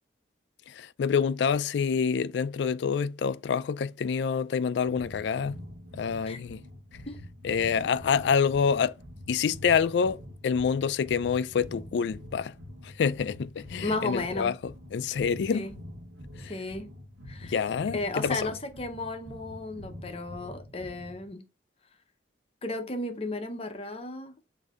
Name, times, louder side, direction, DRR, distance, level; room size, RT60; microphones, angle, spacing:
voice 1, 0.7-5.6 5.9-6.6 7.4-9.0 9.3-12.6 12.8-15.7 16.4-16.5 17.4-18.5, left 6 dB, 70° left, 0.3 m, -27 dB
sound 1, 4.9-21.3, left 1 dB, 80° right, 1.0 m, -45 dB
voice 2, 13.8-14.5 15.5-15.7 16.4-16.9 17.3-17.6 17.9-21.4 22.6-24.3, left 2 dB, 30° left, 0.6 m, -34 dB
6.2 x 2.7 x 2.3 m
head